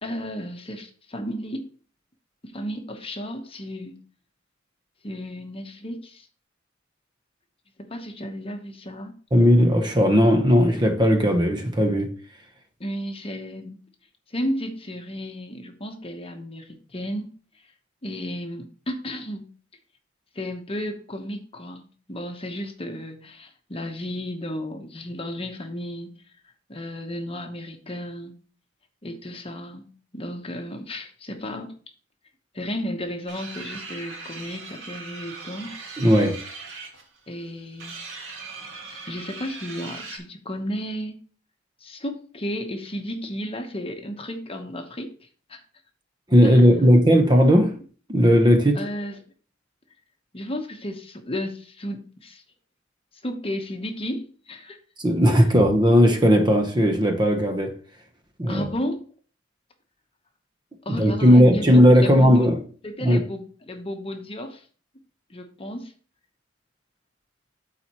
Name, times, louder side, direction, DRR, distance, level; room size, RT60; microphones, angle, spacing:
voice 1, 0.0-1.7 2.4-4.0 5.0-6.3 7.8-9.1 12.8-13.8 14.3-17.3 18.0-19.5 20.3-26.1 26.7-28.3 29.0-29.9 30.1-31.7 32.5-35.8 37.3-38.0 39.0-41.2 41.8-45.2 45.5-45.6 46.4-46.6 48.7-49.2 50.3-52.4 53.2-54.8 58.5-59.0 60.8-62.5 62.8-64.6 65.3-65.9, equal, 30° left, 1.0 m, -33 dB
voice 2, 9.3-12.1 36.0-36.4 46.3-47.7 48.1-48.8 55.0-57.7 58.4-58.6 60.9-62.6 63.0-63.2, equal, 20° right, 0.9 m, -17 dB
sound 1, 33.3-40.2, right 4 dB, 70° right, 2.2 m, -39 dB
12.5 x 4.2 x 3.0 m
head